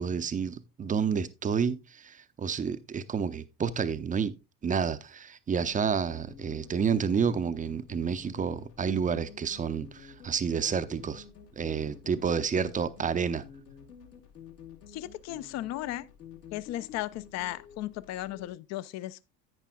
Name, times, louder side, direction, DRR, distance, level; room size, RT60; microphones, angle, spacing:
voice 1, 0.0-4.4 4.6-11.2 11.6-13.4, right 6 dB, 15° right, 0.6 m, -30 dB
sound 1, 5.6-18.5, left 7 dB, 75° left, 2.0 m, -50 dB
voice 2, 14.9-16.1 16.5-19.2, left 15 dB, 35° left, 0.5 m, -36 dB
10.5 x 8.9 x 2.3 m
figure-of-eight pair, 70°, 49 cm